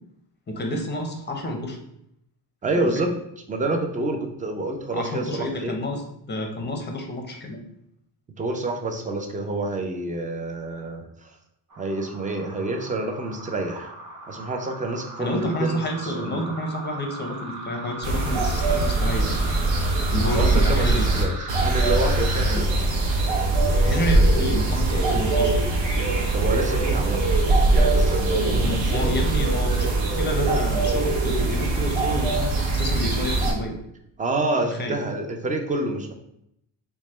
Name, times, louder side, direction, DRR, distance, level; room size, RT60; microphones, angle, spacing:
voice 1, 0.5-1.8 2.7-3.1 4.9-6.0 6.3-7.6 15.2-19.4 20.1-21.1 22.5-22.7 23.8-25.6 28.5-29.9 30.2-33.7 34.7-35.0, left 1 dB, 25° left, 3 dB, 0.6 m, -29 dB
voice 2, 2.6-3.1 3.5-5.7 8.4-11.3 11.8-13.9 14.3-16.4 20.3-21.3 21.6-22.7 26.3-27.3 27.7-29.1 34.2-36.1, right 2 dB, 20° right, 4 dB, 0.4 m, -28 dB
sound 1, 11.7-22.6, right 2 dB, 40° right, 0.8 m, -38 dB
sound 2, 18.0-33.5, right 2 dB, 70° right, 0.9 m, -22 dB
3.1 x 2.2 x 4.2 m, 0.76 s
cardioid pair, 105°, 47 cm